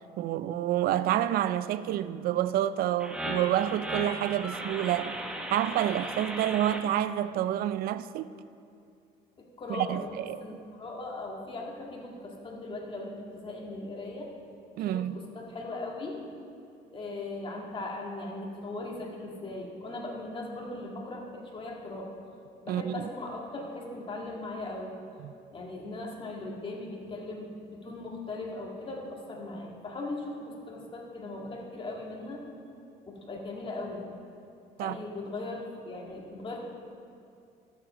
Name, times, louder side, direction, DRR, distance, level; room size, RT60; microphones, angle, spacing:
voice 1, 0.2-5.1 5.5-8.3 9.7-10.4 14.8-15.2 22.7-23.1 25.2-25.3 34.8-35.0, right 12 dB, 60° right, 0.4 m, -28 dB
sound 1, 3.0-6.8, right 1 dB, 5° right, 1.0 m, -36 dB
voice 2, 9.4-10.1 10.4-14.3 14.8-16.2 16.9-22.1 22.6-24.9 25.5-32.4 33.1-34.1 34.8-36.6, left 2 dB, 30° left, 1.8 m, -39 dB
12.5 x 7.3 x 5.1 m
cardioid pair, 110°, 17 cm